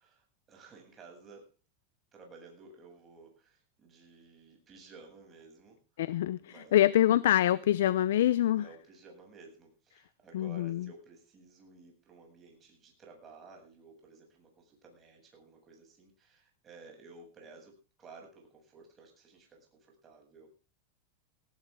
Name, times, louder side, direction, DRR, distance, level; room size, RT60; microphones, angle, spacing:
voice 1, 0.0-1.5 2.1-6.2 6.4-6.8 7.4-7.9 8.6-20.5, right 3 dB, 25° right, 7.8 m, -55 dB
voice 2, 6.0-8.7 10.3-10.9, left 12 dB, 80° left, 0.7 m, -25 dB
18.5 x 16.0 x 3.8 m
supercardioid pair, 130°, 0 cm